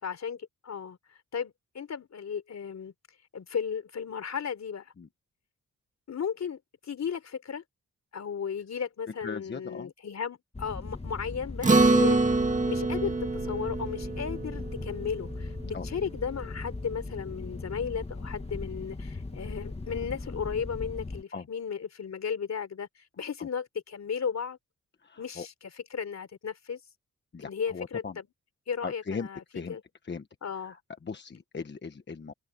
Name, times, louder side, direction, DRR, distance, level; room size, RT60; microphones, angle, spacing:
voice 1, 0.0-1.0 1.3-2.9 3.3-4.9 6.1-7.6 8.1-12.2 12.6-22.9 23.2-24.6 25.2-26.8 27.4-28.3 28.7-29.4 29.7-29.8 30.4-30.8, left 7 dB, 60° left, 3.8 m, -35 dB
voice 2, 9.2-9.9 15.7-15.9 21.3-21.4 25.0-25.5 27.3-28.2 28.8-29.8 30.1-30.3 30.6-32.3, left 5 dB, 35° left, 1.3 m, -38 dB
sound 1, 10.5-21.2, left 3 dB, 20° left, 2.0 m, -39 dB
Acoustic guitar, 11.6-16.3, right 3 dB, 25° right, 2.0 m, -26 dB
wide cardioid pair, 140°, 30 cm